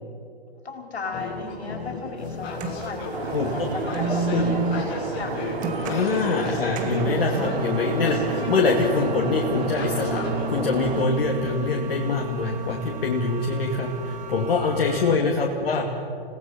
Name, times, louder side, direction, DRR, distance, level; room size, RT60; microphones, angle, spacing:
voice 1, 0.6-5.3 6.4-6.8 14.9-15.1, left 4 dB, 85° left, 2 dB, 4.7 m, -36 dB
sound 1, 1.1-10.4, left 2 dB, 30° left, 5.6 m, -35 dB
sound 2, 2.2-15.2, right 5 dB, 25° right, 1.9 m, -34 dB
sound 3, 3.1-11.1, right 3 dB, 80° right, 3.2 m, -31 dB
voice 2, 5.9-16.0, left 3 dB, 65° left, -1 dB, 2.5 m, -24 dB
29.5 x 18.0 x 5.9 m, 2.6 s
hypercardioid pair, 130°, 31 cm